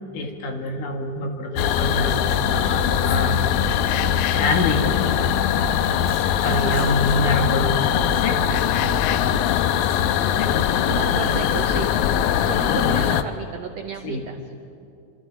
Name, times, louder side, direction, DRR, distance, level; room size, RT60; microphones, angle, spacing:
voice 1, 0.1-3.4 3.7-4.0 4.3-5.2 6.4-7.7 8.1-8.4 10.4-11.4 12.7-12.9 14.0-14.3, left 2 dB, 70° left, 3 dB, 3.3 m, -26 dB
sound 1, 1.6-13.2, left 11 dB, 85° left, 2.5 m, -21 dB
sound 2, 1.8-13.2, right 6 dB, 50° right, 5.7 m, -35 dB
Domestic sounds home sounds, 5.6-7.3, left 1 dB, 45° left, 5.8 m, -41 dB
voice 2, 6.4-7.0 10.9-11.9 12.4-14.4, right 8 dB, 80° right, 6 dB, 1.5 m, -32 dB
27.0 x 26.5 x 4.8 m, 2.7 s
omnidirectional pair, 4.1 m